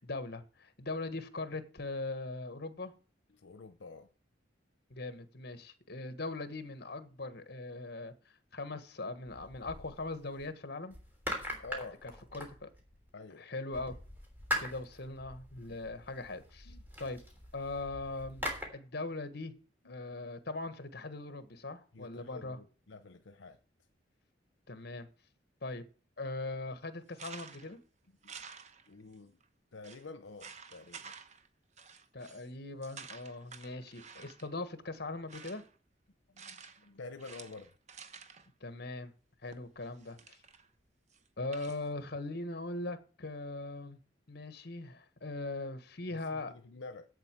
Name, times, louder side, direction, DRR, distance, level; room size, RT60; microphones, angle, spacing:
voice 1, 0.0-2.9 4.9-8.1 8.5-11.0 12.0-12.7 13.3-14.0 14.6-16.7 17.0-17.2 17.5-18.5 18.7-19.5 19.8-22.6 24.7-25.1 25.6-25.8 26.2-27.8 32.1-35.6 38.6-39.1 39.4-40.4 41.4-44.0 44.3-46.5, left 2 dB, 60° left, 1.4 m, -40 dB
voice 2, 3.3-4.1 11.5-12.0 13.1-13.5 16.7-16.8 19.8-20.0 21.9-23.6 27.7-27.8 28.2-28.4 28.9-29.4 29.7-31.1 36.3-37.7 46.1-47.1, left 3 dB, 85° left, 0.8 m, -49 dB
sound 1, 9.3-10.5 10.9-13.1 13.7-18.7, equal, 10° right, 3.3 m, -42 dB
sound 2, 27.1-27.8 28.2-29.1 29.4-29.5 29.8-30.0 30.4-31.5 31.8-32.5 32.8-34.5 35.1-35.7 36.4-36.9 37.2-38.5 39.5-40.7 41.1-41.8, right 6 dB, 40° right, 0.9 m, -51 dB
8.3 x 7.9 x 7.5 m
head